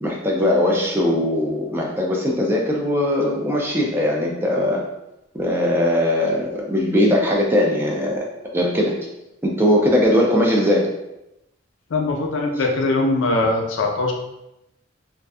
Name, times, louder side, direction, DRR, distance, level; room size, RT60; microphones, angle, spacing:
voice 1, 0.0-4.8 5.3-8.3 8.5-8.9 9.4-10.9, left 1 dB, 10° right, -1 dB, 0.3 m, -20 dB
voice 2, 11.9-14.1, left 2 dB, 75° left, 2 dB, 0.4 m, -21 dB
2.5 x 2.4 x 2.3 m, 0.89 s
head